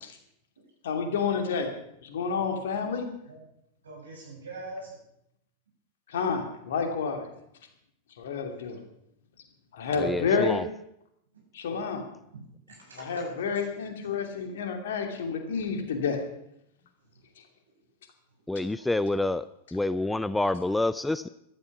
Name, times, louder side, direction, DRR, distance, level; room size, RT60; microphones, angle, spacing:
voice 1, 0.8-1.7 2.0-3.1 6.1-7.3 8.2-8.8 9.7-10.6 11.5-12.1 12.9-16.2, left 5 dB, 60° left, 5 dB, 2.6 m, -29 dB
voice 2, 3.8-5.0 8.5-8.8 12.3-13.2 13.5-13.7 18.7-19.0, right 2 dB, 70° right, -2 dB, 7.6 m, -44 dB
voice 3, 10.0-10.6 18.5-19.4 19.7-21.3, left 2 dB, 5° left, 15 dB, 0.4 m, -27 dB
14.5 x 12.5 x 6.0 m, 0.77 s
figure-of-eight pair, 90°, 0 cm